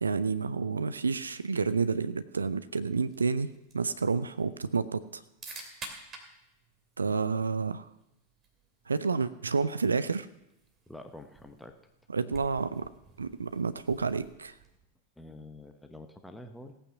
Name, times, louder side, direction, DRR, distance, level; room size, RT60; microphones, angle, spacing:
voice 1, 0.0-3.5 3.7-5.2 7.0-7.9 8.9-10.3 12.1-12.8 13.2-14.5, right 4 dB, 75° right, 13 dB, 0.5 m, -29 dB
sound 1, 3.0-14.9, right 3 dB, 25° right, 2.7 m, -52 dB
voice 2, 10.9-11.8 15.2-16.7, left 1 dB, 5° left, 6 dB, 1.0 m, -47 dB
16.5 x 9.1 x 5.9 m, 0.88 s
figure-of-eight pair, 90°, 0 cm